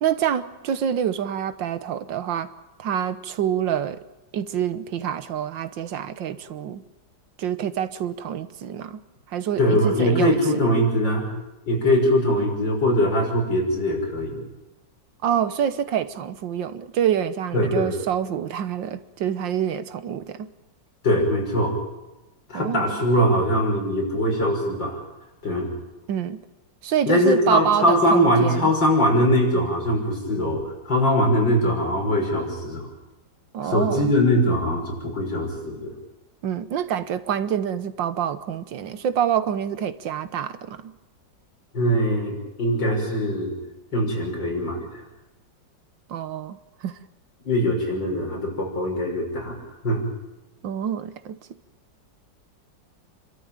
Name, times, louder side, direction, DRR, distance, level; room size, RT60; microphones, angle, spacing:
voice 1, 0.0-2.5 2.8-4.0 4.3-6.8 7.4-9.0 9.3-10.4 15.2-20.5 22.5-23.0 26.1-26.4 26.8-28.7 33.5-34.1 36.4-40.9 46.1-47.0 50.6-51.4, right 9 dB, 80° right, 1.7 m, -26 dB
voice 2, 9.6-11.3 11.7-14.4 17.5-17.9 21.0-21.7 22.5-25.0 25.4-25.7 27.1-32.9 33.6-35.9 41.7-43.6 43.9-45.0 47.4-49.6 49.8-50.0, equal, 75° left, 6.7 m, -22 dB
28.5 x 13.0 x 9.0 m
omnidirectional pair, 2.0 m